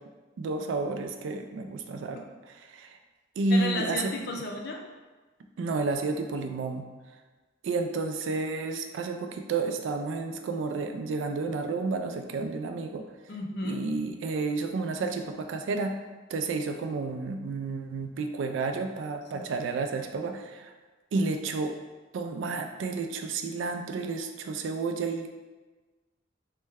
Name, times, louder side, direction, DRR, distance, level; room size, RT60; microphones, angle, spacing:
voice 1, 0.4-2.2 2.7-2.9 3.4-4.0 5.6-6.8 7.6-13.0 13.6-16.0 16.3-20.7 21.1-21.7 22.1-25.3, right 3 dB, 80° right, 6 dB, 0.3 m, -31 dB
voice 2, 3.5-4.8 13.3-13.8 19.3-19.4, left 2 dB, 55° left, 2 dB, 0.4 m, -33 dB
3.2 x 2.1 x 3.3 m, 1.3 s
head